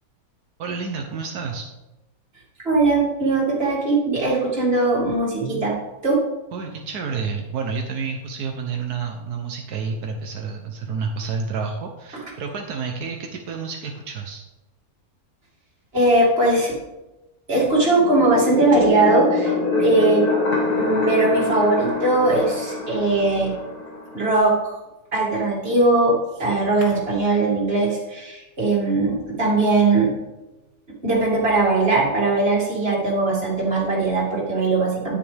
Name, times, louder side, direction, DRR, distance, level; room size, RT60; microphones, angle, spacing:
voice 1, 0.6-1.7 6.5-14.4, right 5 dB, 80° right, 3 dB, 1.4 m, -29 dB
voice 2, 2.6-5.7 6.0-6.2 15.9-16.7 17.5-20.3 20.8-23.6 24.1-24.7 25.1-30.1 31.0-35.2, right 2 dB, 40° right, -4 dB, 2.8 m, -20 dB
sound 1, 17.8-24.4, left 3 dB, 80° left, 2.4 m, -25 dB
10.0 x 9.9 x 3.5 m, 1.0 s
omnidirectional pair, 1.6 m